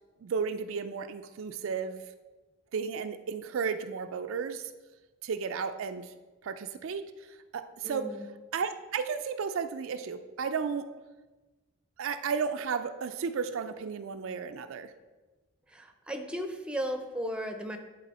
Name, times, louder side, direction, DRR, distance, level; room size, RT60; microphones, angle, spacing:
voice 1, 0.2-2.0 2.7-4.7 5.2-6.1 6.4-8.1 8.5-10.9 12.0-14.9, right 6 dB, 65° right, 9 dB, 0.4 m, -33 dB
voice 2, 7.8-8.2 15.7-17.8, equal, 5° right, 6 dB, 0.6 m, -35 dB
10.0 x 4.1 x 4.2 m, 1.2 s
head